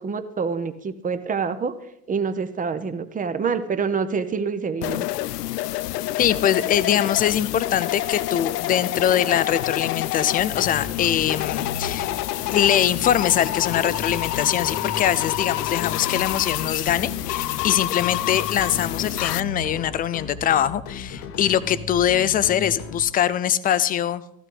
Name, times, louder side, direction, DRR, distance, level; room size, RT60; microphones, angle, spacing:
voice 1, 0.0-1.7 2.1-5.1, right 5 dB, 15° right, 10 dB, 0.9 m, -26 dB
sound 1, 4.8-19.4, left 15 dB, 75° left, 0.5 m, -28 dB
voice 2, 6.2-12.1 12.5-24.2, left 10 dB, 20° left, 17 dB, 0.4 m, -22 dB
sound 2, 10.5-23.0, left 5 dB, 55° left, 1.4 m, -36 dB
14.5 x 12.5 x 3.9 m, 0.77 s
hypercardioid pair, 80°, 48 cm